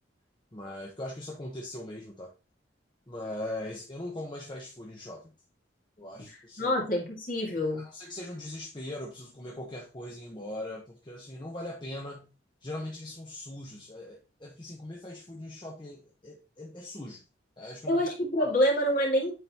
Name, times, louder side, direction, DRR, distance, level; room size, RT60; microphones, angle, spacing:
voice 1, 0.5-2.3 3.1-5.3 6.0-6.7 7.7-12.3 12.6-17.2 17.6-18.0 18.4-18.5, left 1 dB, 25° left, -2 dB, 0.9 m, -40 dB
voice 2, 6.6-7.9 17.9-19.3, equal, 45° left, -1 dB, 2.1 m, -26 dB
9.1 x 3.9 x 2.9 m, 0.30 s
head